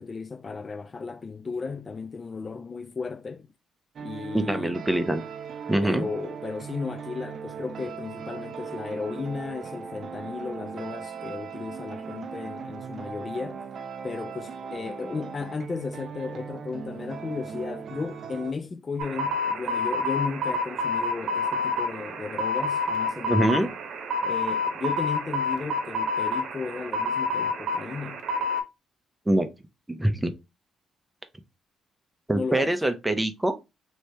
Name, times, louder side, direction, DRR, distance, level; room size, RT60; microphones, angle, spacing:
voice 1, 0.0-3.5 4.0-4.7 5.8-13.6 14.0-23.8 24.2-28.2 32.3-32.8, left 4 dB, 35° left, 0.3 m, -35 dB
sound 1, 4.0-18.5, right 6 dB, 55° right, 0.4 m, -38 dB
voice 2, 4.3-5.2 5.7-6.1 23.3-23.7 29.3-29.5 29.9-30.3 32.3-33.5, right 1 dB, 10° right, 0.6 m, -24 dB
sound 2, 19.0-28.6, left 2 dB, 70° right, 0.8 m, -28 dB
3.1 x 2.7 x 3.2 m
cardioid pair, 90°, 0 cm